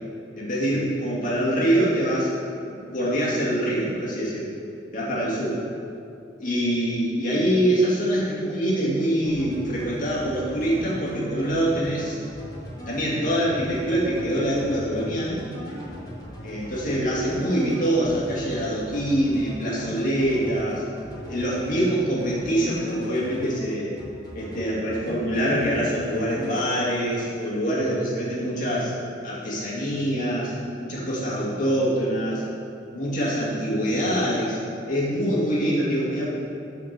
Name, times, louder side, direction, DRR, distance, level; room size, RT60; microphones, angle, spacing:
voice 1, 0.4-2.3 2.7-4.5 4.9-5.6 6.4-12.2 12.9-15.4 16.4-20.8 21.3-23.9 24.4-28.9 29.2-30.5 30.8-32.4 32.9-34.6 34.9-36.3, equal, 45° left, -6 dB, 2.0 m, -24 dB
sound 1, 9.2-23.6 24.0-24.6 24.9-25.8 26.1-26.7, equal, 20° left, 1.5 m, -39 dB
7.2 x 4.5 x 6.6 m, 2.6 s
head